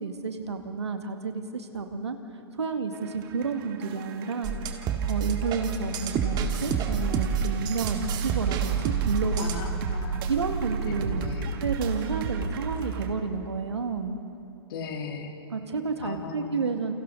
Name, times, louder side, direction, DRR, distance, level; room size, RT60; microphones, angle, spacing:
voice 1, 0.0-2.2 2.6-4.5 5.1-9.6 10.3-11.2 11.6-14.2 15.5-16.9, right 5 dB, 85° right, 6 dB, 2.1 m, -30 dB
sound 1, 2.9-13.1, right 5 dB, 55° right, 2.3 m, -34 dB
sound 2, 4.4-9.7, right 6 dB, 30° right, 2.0 m, -29 dB
voice 2, 9.4-10.2 10.9-11.5 14.7-15.3 16.0-16.5, left 5 dB, 60° left, 1 dB, 3.4 m, -37 dB
29.0 x 28.0 x 4.1 m, 2.8 s
hypercardioid pair, 110°, 14 cm